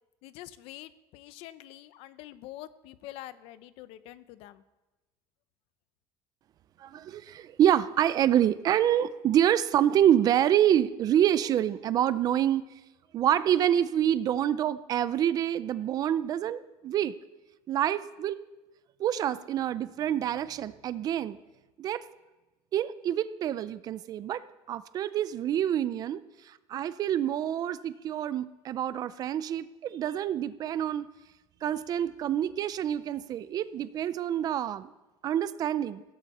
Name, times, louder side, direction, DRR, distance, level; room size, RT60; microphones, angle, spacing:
voice 1, 0.2-4.6, left 14 dB, 70° left, 15 dB, 0.7 m, -46 dB
voice 2, 6.8-12.6 13.1-17.1 17.7-18.4 19.0-21.4 21.8-22.0 22.7-24.4 24.7-31.1 31.6-34.9 35.2-36.0, right 10 dB, 40° right, 15 dB, 0.5 m, -27 dB
16.5 x 14.0 x 4.3 m, 1.1 s
cardioid pair, 160°, 10 cm